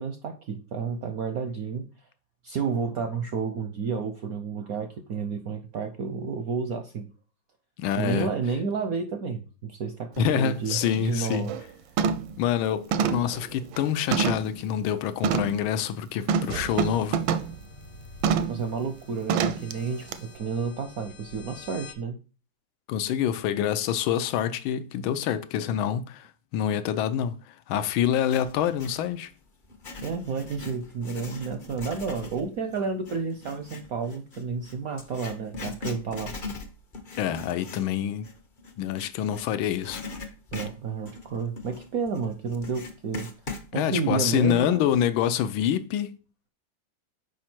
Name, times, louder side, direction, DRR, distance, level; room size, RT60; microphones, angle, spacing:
voice 1, 0.0-1.9 2.4-7.1 8.0-11.6 18.5-22.2 30.0-36.3 40.5-43.3 43.7-44.9, right 5 dB, 65° right, 0.9 m, -31 dB
voice 2, 7.8-8.3 10.2-11.5 12.4-17.2 22.9-26.3 26.5-29.3 37.2-38.3 38.8-40.0 43.7-46.1, left 9 dB, 90° left, 1.4 m, -26 dB
sound 1, 10.2-10.3 10.7-11.0 11.3-11.6 12.0-12.4 12.9-14.6 15.2-15.6 16.3-17.6 18.2-18.6 19.3-19.7 20.1-20.2, right 6 dB, 85° right, 1.4 m, -26 dB
sound 2, 16.6-21.9, left 4 dB, 55° left, 1.3 m, -48 dB
Writing, 28.0-29.0 29.6-39.5 39.8-43.7, left 3 dB, 35° left, 0.8 m, -40 dB
6.3 x 5.0 x 4.4 m
omnidirectional pair, 2.2 m